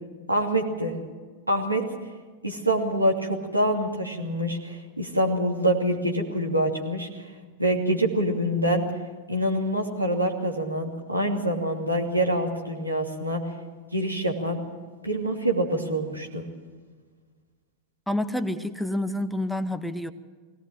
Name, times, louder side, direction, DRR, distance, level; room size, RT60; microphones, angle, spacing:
voice 1, 0.3-1.0 1.5-1.8 2.4-7.2 7.6-8.9 9.3-13.4 13.9-14.6 15.0-16.4, right 1 dB, 85° right, 0 dB, 2.7 m, -25 dB
voice 2, 18.1-20.1, left 1 dB, ahead, 11 dB, 0.9 m, -28 dB
22.0 x 17.5 x 7.8 m, 1.5 s
figure-of-eight pair, 90°, 0 cm